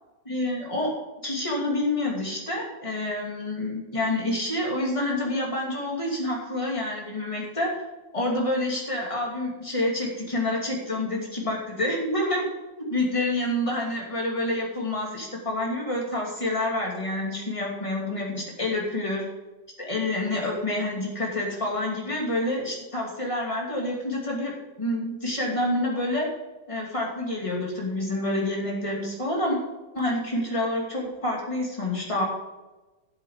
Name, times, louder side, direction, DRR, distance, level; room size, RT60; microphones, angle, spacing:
voice 1, 0.2-0.9 1.2-7.7 8.1-12.5 12.8-19.2 19.8-24.5 24.8-26.3 26.7-29.6 29.9-32.2, left 1 dB, 20° left, -2 dB, 2.8 m, -28 dB
12.0 x 8.4 x 5.0 m, 1.1 s
omnidirectional pair, 1.6 m